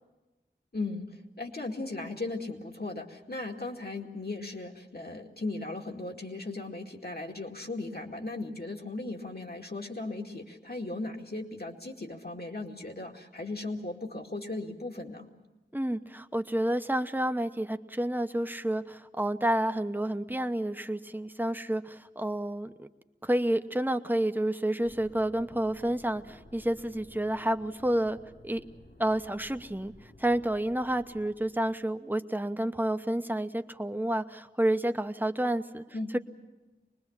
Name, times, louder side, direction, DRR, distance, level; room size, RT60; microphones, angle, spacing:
voice 1, 0.7-1.1 1.4-15.3 35.9-36.2, left 2 dB, 55° left, 1 dB, 2.3 m, -37 dB
voice 2, 15.7-22.9 23.2-28.2 28.4-28.6 29.0-29.9 30.2-35.8 36.1-36.2, right 1 dB, 10° right, 8 dB, 0.9 m, -29 dB
sound 1, 24.8-31.8, left 1 dB, 90° left, 5.7 m, -55 dB
25.0 x 21.0 x 7.3 m, 1.1 s
wide cardioid pair, 45°, 19 cm